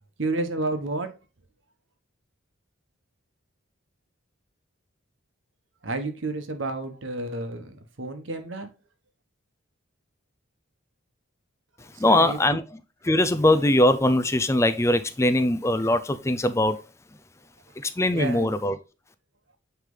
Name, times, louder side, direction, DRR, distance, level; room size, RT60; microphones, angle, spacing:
voice 1, 0.2-1.1 5.8-8.7 11.9-12.4 18.1-18.5, right 2 dB, 65° right, 1.1 m, -30 dB
voice 2, 11.8-12.6 13.0-16.8 17.8-18.8, left 1 dB, 15° left, 0.5 m, -21 dB
9.4 x 3.4 x 3.8 m
head